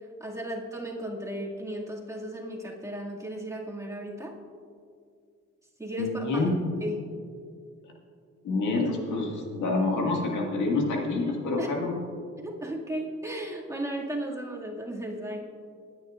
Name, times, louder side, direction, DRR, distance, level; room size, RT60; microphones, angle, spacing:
voice 1, 0.2-4.3 5.8-6.4 6.8-7.0 11.6-11.7 12.4-15.6, right 1 dB, 10° right, -4 dB, 2.2 m, -35 dB
voice 2, 6.0-6.6 7.8-7.9 8.4-12.0, left 3 dB, 80° left, -1 dB, 2.0 m, -27 dB
23.5 x 9.8 x 2.5 m, 2.3 s
cardioid pair, 90°, 30 cm